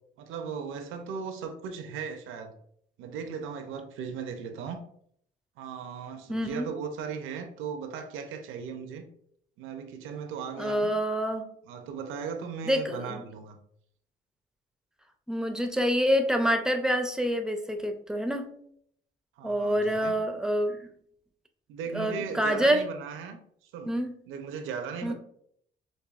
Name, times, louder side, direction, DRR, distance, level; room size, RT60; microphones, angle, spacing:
voice 1, 0.2-2.5 3.0-4.8 5.6-9.1 9.6-10.9 11.6-13.6 19.4-20.1 21.7-24.0 24.3-25.1, right 6 dB, 90° right, 0.6 m, -37 dB
voice 2, 6.3-6.7 10.6-11.5 12.7-13.2 15.3-18.5 19.4-20.9 21.9-22.8 23.8-24.1 25.0-25.1, equal, 5° right, 0.5 m, -27 dB
5.3 x 2.6 x 2.4 m
cardioid pair, 90°, 20 cm